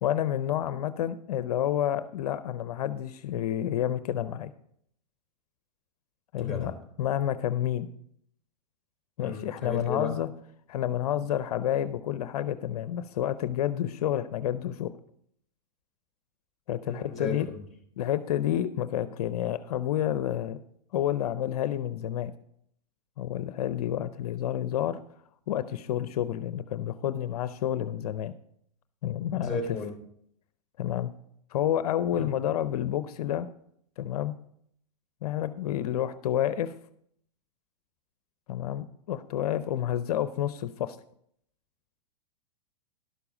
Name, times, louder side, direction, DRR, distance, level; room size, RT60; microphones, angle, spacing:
voice 1, 0.0-4.5 6.3-6.7 7.0-7.9 9.2-10.3 10.7-14.9 16.7-17.5 18.0-20.6 20.9-22.3 23.2-25.0 25.5-28.3 29.0-29.6 30.8-31.1 31.5-33.5 34.0-34.3 35.2-36.7 38.5-41.0, left 11 dB, 65° left, 13 dB, 0.6 m, -29 dB
voice 2, 6.4-6.7 9.2-10.1 16.9-17.6 29.3-29.9 32.1-32.3, left 3 dB, ahead, 1 dB, 3.0 m, -35 dB
11.5 x 6.9 x 5.0 m, 0.70 s
hypercardioid pair, 115°, 21 cm